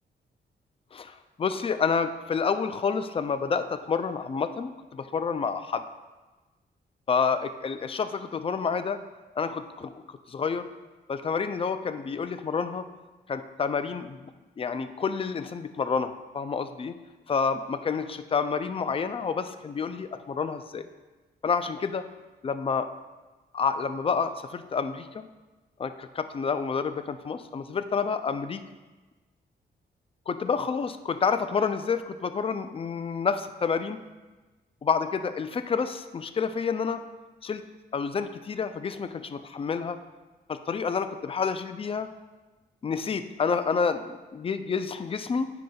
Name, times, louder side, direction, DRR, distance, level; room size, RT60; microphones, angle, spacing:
voice 1, 0.9-5.8 7.1-9.0 9.4-9.9 10.3-10.7 11.1-12.8 13.3-16.9 17.3-20.9 21.4-22.0 22.4-22.9 23.5-25.3 25.8-28.6 30.3-34.0 34.8-37.0 37.4-37.6 37.9-40.0 40.5-42.1 42.8-45.5, left 5 dB, 30° left, 10 dB, 0.3 m, -29 dB
9.3 x 5.1 x 2.3 m, 1.2 s
cardioid pair, 100°, 18 cm